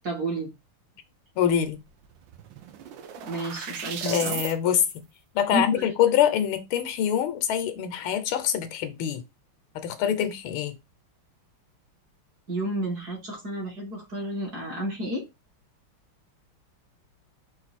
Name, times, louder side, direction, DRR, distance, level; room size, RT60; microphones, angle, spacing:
voice 1, 0.0-0.5 3.3-4.4 5.5-5.9 12.5-15.2, right 1 dB, 50° right, 1.9 m, -31 dB
voice 2, 1.4-1.8 4.0-4.8 5.3-9.2 9.7-10.7, left 9 dB, 80° left, 1.6 m, -25 dB
sound 1, 1.7-1.8 2.0-4.5, right 8 dB, 70° right, 1.3 m, -36 dB
4.5 x 2.6 x 4.0 m
omnidirectional pair, 2.3 m